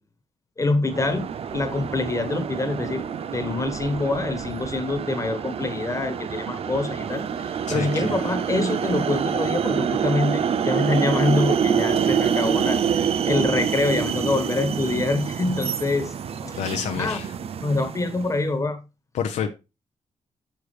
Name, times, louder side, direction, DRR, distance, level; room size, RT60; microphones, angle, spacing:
voice 1, 0.6-1.3 1.5-3.0 3.3-16.1 16.4-16.6 16.9-17.2 17.6-18.8, left 2 dB, 25° left, 1.4 m, -25 dB
sound 1, 0.9-18.4, right 7 dB, 55° right, 0.5 m, -26 dB
voice 2, 7.7-8.1 16.6-17.3 19.1-19.5, left 8 dB, 80° left, 0.7 m, -28 dB
6.7 x 6.5 x 3.3 m
cardioid pair, 70°, 12 cm